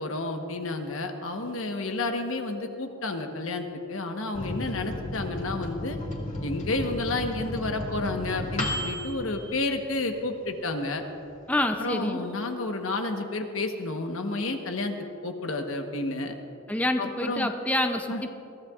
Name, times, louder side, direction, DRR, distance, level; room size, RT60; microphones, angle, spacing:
voice 1, 0.0-6.0 6.4-11.0 11.8-15.0 15.2-16.3 17.0-17.5 18.1-18.2, left 2 dB, 70° left, 4 dB, 1.2 m, -31 dB
Microwave oven, 4.3-10.4 10.8-10.9 11.2-11.8, left 1 dB, 35° left, 2.1 m, -34 dB
voice 2, 11.5-12.2 16.7-18.3, left 1 dB, 5° left, 5 dB, 0.5 m, -27 dB
22.0 x 15.5 x 2.4 m, 2.9 s
head